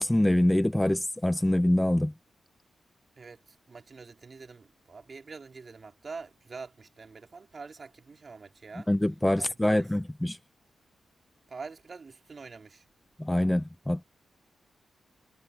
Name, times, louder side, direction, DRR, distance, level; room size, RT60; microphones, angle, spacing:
voice 1, 0.0-2.1 8.9-10.4 13.2-14.0, left 1 dB, 15° left, 0.5 m, -25 dB
voice 2, 3.2-8.9 9.4-9.9 11.5-12.8, right 4 dB, 55° right, 2.9 m, -45 dB
supercardioid pair, 45°, 0 cm